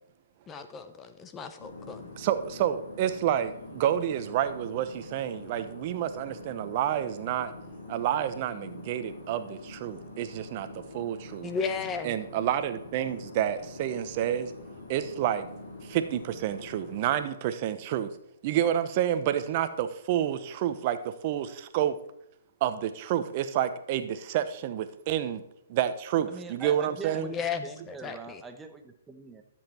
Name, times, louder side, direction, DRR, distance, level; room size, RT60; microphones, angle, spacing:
voice 1, 0.5-2.0 11.4-12.1 27.1-28.4, left 6 dB, 20° left, 9 dB, 0.9 m, -34 dB
sound 1, 1.6-17.2, left 2 dB, 70° left, 4.0 m, -45 dB
voice 2, 2.2-7.5 7.9-11.5 12.0-14.5 14.9-15.5 15.8-18.1 18.4-21.0 21.2-22.0 22.6-25.4 25.7-27.3, right 11 dB, 40° right, 11 dB, 0.8 m, -29 dB
voice 3, 26.3-29.4, right 4 dB, 10° right, 6 dB, 1.0 m, -43 dB
10.5 x 7.4 x 4.3 m, 0.77 s
hypercardioid pair, 140°, 0 cm